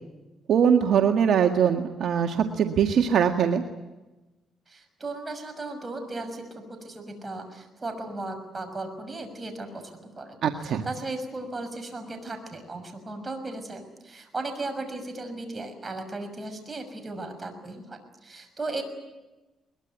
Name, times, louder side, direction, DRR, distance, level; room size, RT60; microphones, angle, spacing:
voice 1, 0.5-3.6 10.4-10.8, right 8 dB, 65° right, 4 dB, 1.8 m, -22 dB
voice 2, 4.7-18.8, right 2 dB, 25° right, 6 dB, 6.2 m, -36 dB
22.5 x 21.5 x 9.4 m, 1.1 s
cardioid pair, 90°, 0 cm